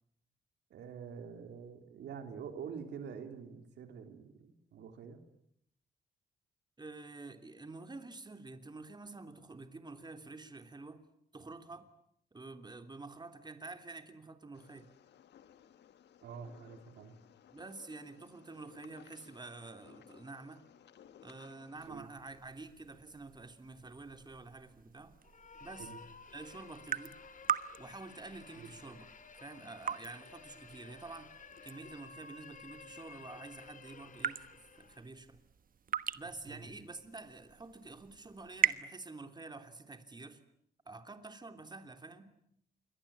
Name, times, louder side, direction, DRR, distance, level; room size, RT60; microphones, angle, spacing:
voice 1, 0.7-5.2 16.2-17.2 21.9-22.0 25.8-26.0 28.6-28.7 36.5-36.7, right 6 dB, 90° right, 7 dB, 3.2 m, -46 dB
voice 2, 6.8-11.0 11.3-11.8 12.3-14.9 17.5-20.6 21.2-25.1 25.6-25.9 26.3-27.1 27.8-29.1 29.4-31.3 31.6-34.5 34.8-35.4 36.1-40.4 40.8-42.3, right 3 dB, 25° right, 8 dB, 3.1 m, -48 dB
sound 1, 14.5-21.9, left 9 dB, 85° left, 1.6 m, -60 dB
sound 2, 21.8-38.8, right 8 dB, 55° right, 1.3 m, -42 dB
sound 3, 25.2-35.1, left 5 dB, 50° left, 2.1 m, -54 dB
27.5 x 22.5 x 8.7 m, 0.73 s
cardioid pair, 75°, 17 cm